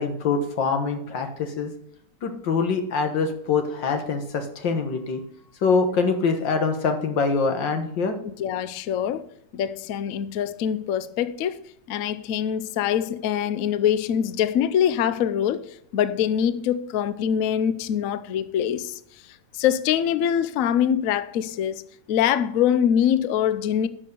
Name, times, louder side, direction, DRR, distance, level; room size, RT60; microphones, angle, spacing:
voice 1, 0.0-1.7 2.2-5.2 5.6-8.2, left 4 dB, 90° left, 2.1 m, -24 dB
voice 2, 8.2-9.3 9.5-11.6 11.9-19.0 19.5-21.8 22.1-23.9, left 9 dB, 65° left, 0.9 m, -24 dB
10.5 x 6.4 x 6.8 m
omnidirectional pair, 1.9 m